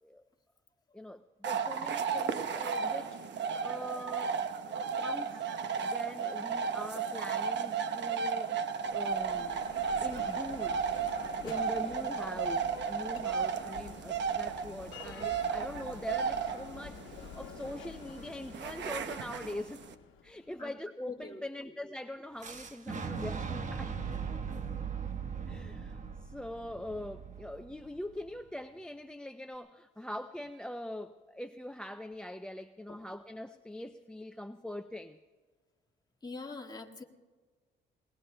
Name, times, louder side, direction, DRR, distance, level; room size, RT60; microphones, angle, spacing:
voice 1, 0.9-4.4 5.0-9.7 10.0-10.8 11.4-19.8 20.2-24.0 25.5-35.2, left 1 dB, 5° left, 11 dB, 0.4 m, -43 dB
sound 1, 1.4-19.9, right 6 dB, 65° right, 0.9 m, -34 dB
Bell, 8.8-20.6, left 9 dB, 80° left, 1.0 m, -49 dB
voice 2, 21.1-21.8 32.9-33.0 36.2-37.0, left 3 dB, 20° left, 0 dB, 1.8 m, -44 dB
Fire / Explosion, 22.4-28.3, right 6 dB, 40° right, 1.2 m, -39 dB
28.5 x 21.0 x 2.2 m, 1.4 s
cardioid pair, 90°, 20 cm